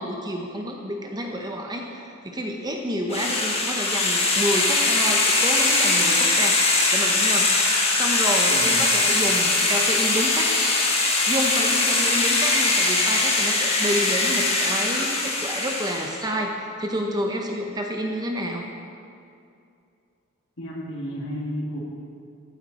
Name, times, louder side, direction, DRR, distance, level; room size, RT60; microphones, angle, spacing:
voice 1, 0.0-7.6 7.9-10.5 11.3-18.7, equal, 20° right, 1 dB, 0.9 m, -29 dB
sound 1, 3.1-16.2, left 3 dB, 30° left, 1.5 m, -21 dB
voice 2, 8.5-8.9 20.6-21.8, equal, 60° left, -3 dB, 2.4 m, -32 dB
15.0 x 8.7 x 4.3 m, 2.5 s
head